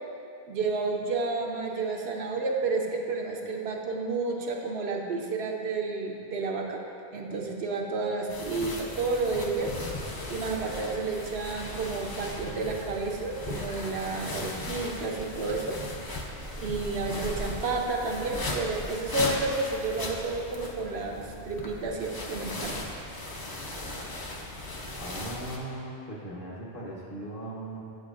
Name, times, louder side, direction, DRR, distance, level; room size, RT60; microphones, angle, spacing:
voice 1, 0.5-6.8 7.1-9.7 10.3-15.8 16.6-22.8, right 3 dB, 85° right, 1 dB, 0.9 m, -31 dB
sound 1, 8.3-25.6, left 1 dB, 30° left, 0.4 m, -37 dB
voice 2, 25.0-27.8, right 1 dB, 60° left, -4 dB, 1.2 m, -38 dB
7.8 x 7.4 x 2.5 m, 2.6 s
omnidirectional pair, 1.0 m